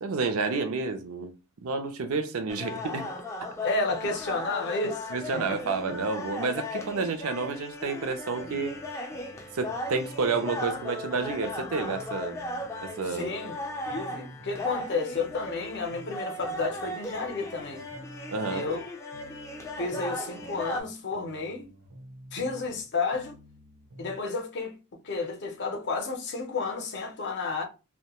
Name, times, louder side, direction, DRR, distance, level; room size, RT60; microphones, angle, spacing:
voice 1, 0.0-1.3 1.6-3.1 5.1-8.8 9.5-12.4 12.8-13.3 18.3-18.7, right 4 dB, 65° right, 0.5 m, -30 dB
sound 1, 2.5-20.8, left 1 dB, 10° left, 0.3 m, -37 dB
voice 2, 3.6-5.6 13.0-13.6 13.9-17.8 18.5-18.9 19.8-21.7 22.3-23.4 24.0-24.8 25.0-27.6, left 3 dB, 50° left, 0.6 m, -31 dB
sound 2, 8.4-10.9 11.1-14.9 15.1-18.9 19.1-22.9 23.1-24.2, equal, 90° right, 1.0 m, -50 dB
2.1 x 2.1 x 2.9 m
head